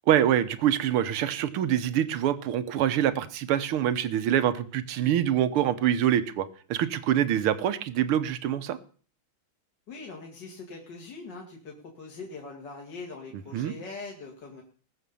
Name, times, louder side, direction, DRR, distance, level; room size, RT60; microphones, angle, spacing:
voice 1, 0.1-8.8 13.5-13.7, right 10 dB, 85° right, 12 dB, 1.9 m, -25 dB
voice 2, 9.9-14.6, left 3 dB, 55° left, 0 dB, 2.8 m, -42 dB
20.5 x 7.0 x 7.0 m, 0.42 s
omnidirectional pair, 2.3 m